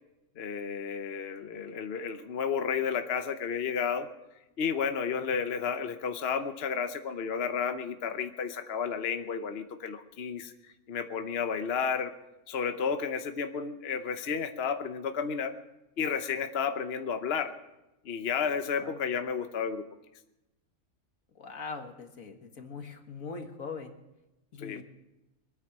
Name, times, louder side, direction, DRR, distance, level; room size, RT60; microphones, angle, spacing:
voice 1, 0.4-4.1 4.6-10.5 10.9-12.1 12.5-15.5 16.0-17.5 18.0-19.8 24.6-24.8, left 6 dB, 50° left, 7 dB, 1.0 m, -32 dB
voice 2, 21.4-23.9 24.5-24.8, left 4 dB, 75° left, 5 dB, 2.0 m, -41 dB
23.5 x 9.6 x 6.1 m, 0.97 s
omnidirectional pair, 1.4 m